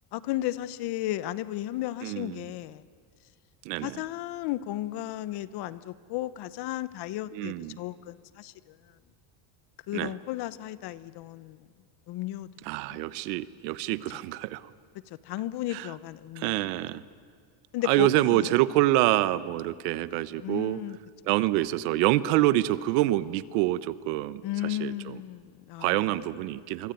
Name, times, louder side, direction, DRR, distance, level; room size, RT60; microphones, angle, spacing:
voice 1, 0.1-2.8 3.8-8.9 9.9-11.7 12.1-12.5 12.9-13.0 15.1-16.6 17.7-18.6 20.4-21.0 24.4-26.2, left 15 dB, 50° left, 16 dB, 1.1 m, -34 dB
voice 2, 2.0-2.4 3.6-4.0 7.3-7.8 9.9-10.1 12.7-14.7 15.7-15.9 16.4-17.0 17.9-20.8 21.3-25.2 25.8-26.9, right 16 dB, 85° right, 16 dB, 1.2 m, -26 dB
26.0 x 24.5 x 9.3 m, 2.1 s
cardioid pair, 150°, 49 cm